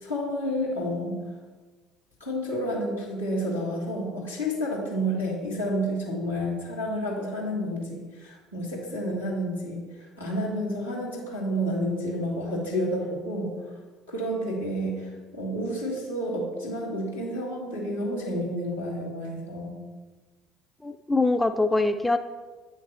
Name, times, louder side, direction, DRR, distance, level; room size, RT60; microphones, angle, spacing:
voice 1, 0.0-1.2 2.2-13.5 14.1-19.8, equal, 85° left, -6 dB, 1.8 m, -30 dB
voice 2, 20.8-22.2, left 2 dB, 10° left, 8 dB, 0.3 m, -23 dB
8.9 x 3.2 x 4.3 m, 1.3 s
figure-of-eight pair, 55°, 0 cm